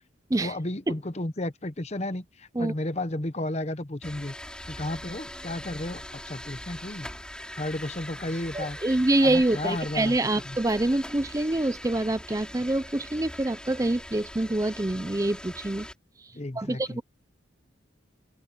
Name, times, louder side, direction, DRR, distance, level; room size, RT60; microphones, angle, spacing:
voice 1, 0.4-4.3 4.7-7.1 7.6-8.8 9.2-10.2 10.4-10.6 16.3-17.0, left 1 dB, 35° left, 0.9 m, -33 dB
sound 1, 4.0-15.9, left 1 dB, 5° left, 6.4 m, -42 dB
voice 2, 8.5-15.9 16.2-17.0, right 2 dB, 15° right, 0.5 m, -26 dB
open air
head